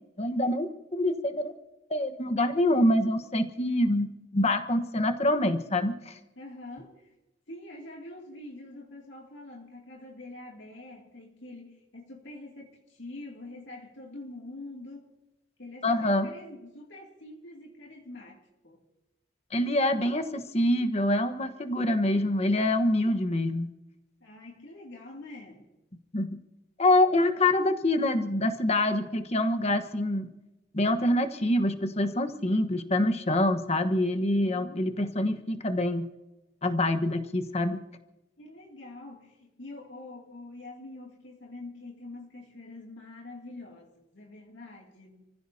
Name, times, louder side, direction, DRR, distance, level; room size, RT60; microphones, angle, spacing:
voice 1, 0.2-1.5 1.9-6.2 15.8-16.3 19.5-23.7 26.1-26.4 26.8-30.3 30.7-36.1 36.6-37.8, left 1 dB, 35° left, 7 dB, 1.3 m, -26 dB
voice 2, 6.4-7.1 7.5-15.1 15.6-18.8 24.2-25.7 34.4-34.8 38.4-45.3, left 2 dB, 75° left, -1 dB, 2.6 m, -45 dB
29.5 x 15.5 x 2.8 m, 0.99 s
head